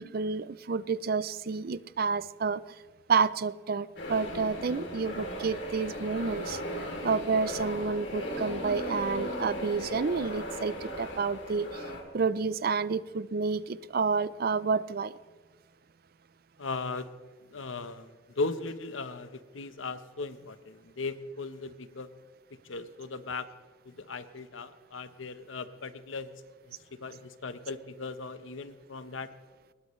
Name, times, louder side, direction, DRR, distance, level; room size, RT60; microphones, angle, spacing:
voice 1, 0.0-2.6 3.1-6.6 7.0-11.8 12.1-15.1, right 5 dB, 50° right, 0.5 m, -29 dB
sound 1, 4.0-12.0, equal, 65° left, 3.0 m, -37 dB
sound 2, 7.0-11.3 11.9-12.0, equal, 10° right, 0.7 m, -47 dB
voice 2, 16.6-17.1 17.5-22.1 22.6-23.5 23.8-26.3 26.6-29.3, left 3 dB, 85° left, 1.0 m, -38 dB
22.0 x 19.5 x 3.2 m
head